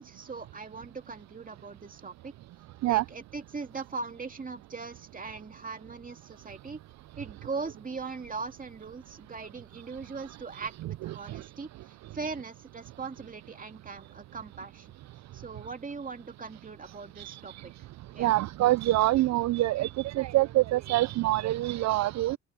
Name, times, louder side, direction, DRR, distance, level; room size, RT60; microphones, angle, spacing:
voice 1, 0.0-2.3 2.8-6.8 7.2-14.9 15.3-17.7 18.1-18.3, right 4 dB, 25° right, 2.5 m, -40 dB
voice 2, 18.2-22.4, right 16 dB, 65° right, 0.5 m, -25 dB
open air
cardioid pair, 90°, 30 cm